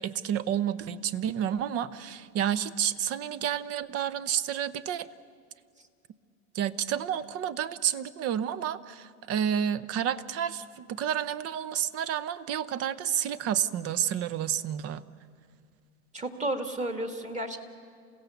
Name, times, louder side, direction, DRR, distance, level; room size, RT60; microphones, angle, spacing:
voice 1, 0.0-5.1 6.5-15.0, right 9 dB, 35° right, 17 dB, 0.8 m, -30 dB
voice 2, 16.1-17.6, right 1 dB, 15° right, 5 dB, 1.9 m, -32 dB
28.5 x 16.5 x 7.0 m, 2.2 s
hypercardioid pair, 115°, 44 cm